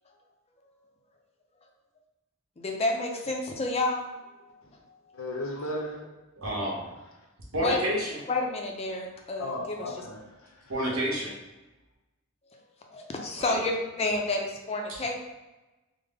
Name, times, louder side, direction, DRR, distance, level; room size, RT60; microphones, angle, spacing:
voice 1, 2.6-4.1 7.6-7.8 8.3-9.8 12.5-12.6 12.9-13.7 14.0-15.2, left 2 dB, 30° left, 0.4 m, -29 dB
voice 2, 5.1-6.3 9.4-10.7, left 1 dB, 80° left, 0.7 m, -36 dB
voice 3, 6.4-6.8 7.5-8.2 10.7-11.3 13.3-13.6, right 1 dB, 80° right, 1.0 m, -29 dB
3.4 x 2.0 x 3.5 m
head